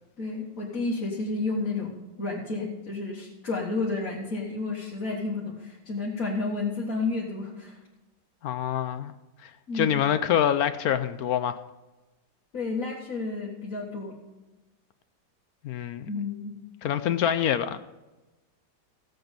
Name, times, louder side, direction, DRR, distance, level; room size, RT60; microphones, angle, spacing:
voice 1, 0.2-7.8 9.7-10.0 12.5-14.1 16.1-16.6, left 3 dB, 50° left, -6 dB, 2.2 m, -31 dB
voice 2, 8.4-9.1 9.4-11.6 15.6-16.1 16.8-17.8, left 9 dB, 70° left, 11 dB, 0.9 m, -26 dB
16.0 x 7.9 x 5.1 m, 1.1 s
omnidirectional pair, 1.9 m